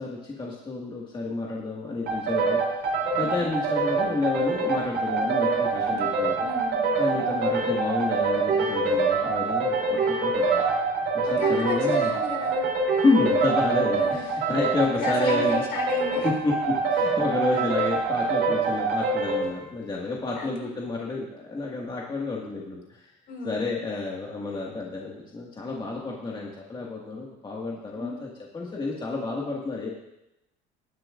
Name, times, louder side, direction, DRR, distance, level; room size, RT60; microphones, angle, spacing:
voice 1, 0.0-2.8 3.2-6.5 7.0-10.7 11.1-12.1 13.0-15.6 16.2-23.0 23.4-29.9, left 3 dB, 25° left, -3 dB, 1.9 m, -29 dB
sound 1, 2.1-19.5, right 3 dB, 65° right, 3.3 m, -25 dB
voice 2, 5.2-5.6 5.9-7.0 9.9-10.0 11.2-12.7 14.0-14.2 14.9-16.3 17.5-17.7 20.4-20.7 23.3-23.7 27.9-28.2, left 3 dB, 60° left, 1 dB, 4.0 m, -35 dB
20.0 x 10.5 x 2.5 m, 0.90 s
cardioid pair, 115°, 19 cm